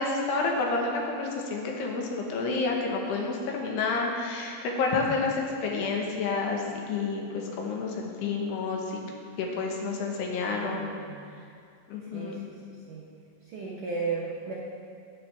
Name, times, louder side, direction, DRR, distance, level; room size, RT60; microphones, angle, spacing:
voice 1, 0.0-9.0 9.4-10.9 11.9-12.5, left 4 dB, 70° left, 0 dB, 3.1 m, -29 dB
voice 2, 10.5-11.2 12.0-13.0 13.5-14.5, right 4 dB, 80° right, -4 dB, 1.9 m, -35 dB
18.0 x 7.7 x 3.4 m, 2.4 s
omnidirectional pair, 5.3 m